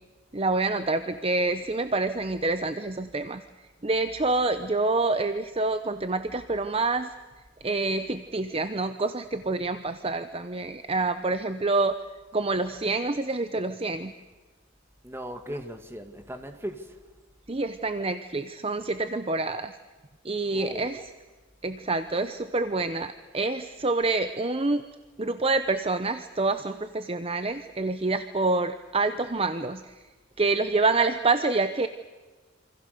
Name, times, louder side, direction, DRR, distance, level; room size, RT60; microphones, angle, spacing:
voice 1, 0.3-3.4 3.8-7.1 7.6-12.0 12.3-14.1 17.5-19.7 20.2-21.0 21.6-24.8 25.2-29.9 30.4-31.9, right 3 dB, 30° right, 0.8 m, -27 dB
voice 2, 15.0-17.0 20.5-20.9, equal, 10° right, 2.1 m, -37 dB
28.0 x 26.0 x 6.8 m
head